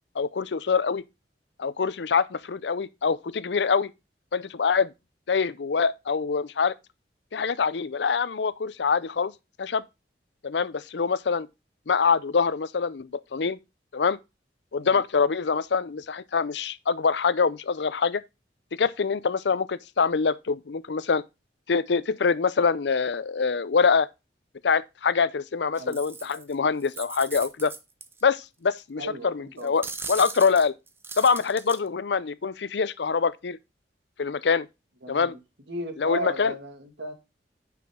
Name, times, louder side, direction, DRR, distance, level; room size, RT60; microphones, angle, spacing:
voice 1, 0.2-1.0 1.6-3.9 4.3-4.9 5.3-6.7 7.3-9.3 9.6-9.8 10.4-11.5 11.9-13.6 13.9-14.2 14.7-18.2 18.7-21.2 21.7-24.1 24.6-27.7 28.2-30.7 31.2-33.6 34.2-34.7 35.1-35.3 36.0-36.5, left 5 dB, 75° left, 0.6 m, -25 dB
sound 1, 25.8-26.5 26.8-28.2 28.8-28.9 29.6-31.8, right 4 dB, 15° right, 0.7 m, -38 dB
voice 2, 29.0-29.7 35.0-35.4 35.7-37.1, right 1 dB, 85° right, 2.3 m, -35 dB
9.3 x 5.9 x 3.7 m
head